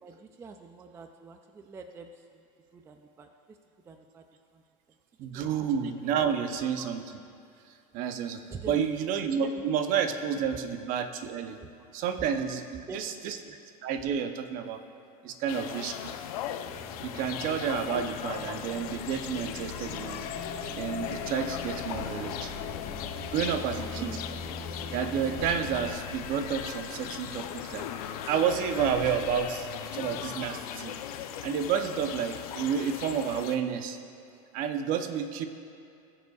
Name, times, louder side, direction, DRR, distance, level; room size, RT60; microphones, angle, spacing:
voice 1, 0.0-2.4 2.7-3.6 3.8-4.3 4.5-4.6 5.3-5.5 6.6-6.9 8.5-8.9 9.5-9.6 11.6-11.9 12.8-13.6 23.9-24.7, right 4 dB, 15° right, 6 dB, 0.3 m, -46 dB
voice 2, 5.2-7.0 7.9-8.4 8.7-11.6 11.9-13.4 13.8-14.8 15.2-16.1 17.0-20.2 20.8-22.5 23.3-24.1 24.9-27.9 28.3-30.9 31.4-34.0 34.5-35.5, right 7 dB, 50° right, 8 dB, 0.7 m, -30 dB
sound 1, 15.5-33.6, left 10 dB, 90° left, 0.6 m, -39 dB
sound 2, 16.6-25.9, left 1 dB, 10° left, 1.2 m, -43 dB
sound 3, 19.7-29.5, left 7 dB, 50° left, 1.1 m, -42 dB
19.5 x 6.9 x 2.3 m, 2.6 s
supercardioid pair, 150°, 19 cm